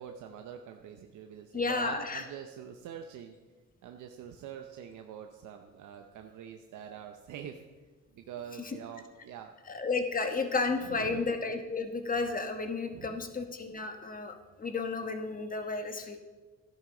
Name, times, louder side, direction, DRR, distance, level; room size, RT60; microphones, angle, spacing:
voice 1, 0.0-3.4 3.8-7.6 8.1-9.5 10.8-11.3 12.9-13.3, right 9 dB, 80° right, 5 dB, 0.8 m, -45 dB
voice 2, 1.5-2.2 9.7-16.2, left 4 dB, 30° left, 6 dB, 1.3 m, -32 dB
13.0 x 10.5 x 3.9 m, 1.3 s
cardioid pair, 90°, 30 cm